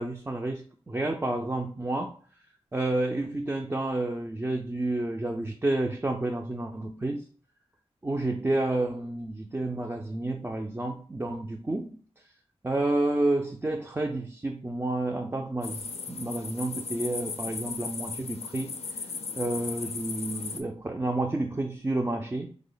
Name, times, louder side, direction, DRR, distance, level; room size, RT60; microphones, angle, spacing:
voice 1, 0.0-2.2 2.7-7.2 8.0-12.0 12.6-18.7 19.4-22.5, right 2 dB, 20° right, 0.4 m, -30 dB
sound 1, 15.6-20.6, left 5 dB, 75° left, 0.4 m, -37 dB
3.1 x 2.0 x 3.8 m
wide cardioid pair, 70°, 11 cm